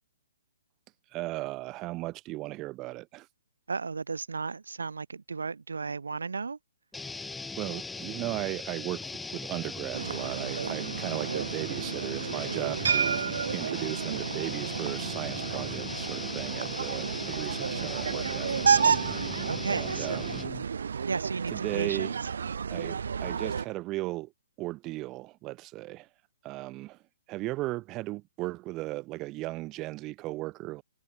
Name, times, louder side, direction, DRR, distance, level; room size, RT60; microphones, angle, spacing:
voice 1, 1.1-3.3 7.6-13.3 13.5-18.5 19.7-20.4 21.5-22.1 22.7-24.3 24.6-26.1 26.4-27.0 27.3-30.8, right 19 dB, 25° right, 1.2 m, -36 dB
voice 2, 3.7-6.6 19.5-20.3 21.0-22.1, right 4 dB, 90° right, 3.8 m, -34 dB
sound 1, 6.9-20.6, left 3 dB, 5° left, 5.2 m, -39 dB
sound 2, 9.9-23.7, right 6 dB, 75° right, 2.6 m, -31 dB
hypercardioid pair, 145°, 0 cm